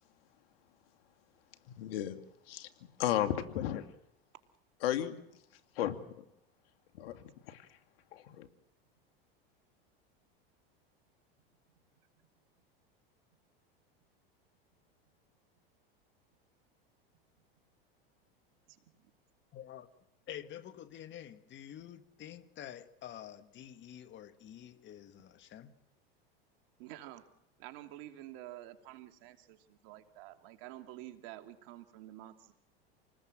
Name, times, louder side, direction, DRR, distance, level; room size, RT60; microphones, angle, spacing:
voice 1, 1.8-2.2 2.5-2.7 3.0-3.9 4.8-5.1 5.8-6.0 6.9-7.6 8.1-8.5, left 12 dB, 75° left, 2.4 m, -34 dB
voice 2, 19.5-19.9 20.3-25.7, left 11 dB, 40° left, 1.9 m, -48 dB
voice 3, 26.8-27.3 27.6-32.5, right 14 dB, 65° right, 2.9 m, -49 dB
28.0 x 19.5 x 7.7 m
hypercardioid pair, 105°, 30 cm